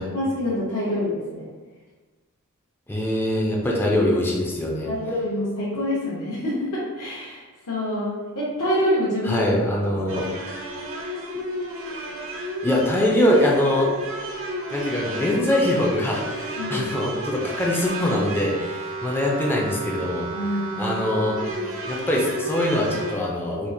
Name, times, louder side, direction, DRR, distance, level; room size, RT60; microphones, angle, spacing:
voice 1, 0.1-1.4 4.9-9.4 10.1-10.2 16.6-16.9 20.3-20.9 21.4-21.6, left 1 dB, 75° left, -9 dB, 0.8 m, -26 dB
voice 2, 2.9-4.9 9.2-10.3 12.6-13.9 14.7-21.4 21.9-23.7, left 1 dB, 10° left, -3 dB, 0.4 m, -23 dB
sound 1, 10.1-23.1, right 1 dB, 60° right, 0.6 m, -32 dB
4.2 x 2.4 x 2.6 m, 1.3 s
head